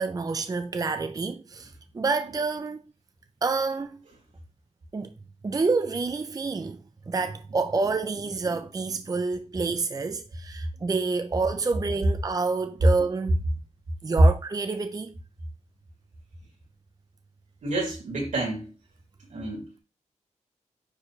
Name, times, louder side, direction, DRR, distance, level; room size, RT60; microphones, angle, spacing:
voice 1, 0.0-2.8 3.4-4.0 4.9-5.1 5.4-6.8 7.1-13.4 14.0-15.1, right 4 dB, 30° right, 0.5 m, -28 dB
voice 2, 17.6-18.7 19.3-19.7, right 2 dB, 85° right, 4.6 m, -30 dB
9.7 x 4.5 x 3.2 m
wide cardioid pair, 120°, 12 cm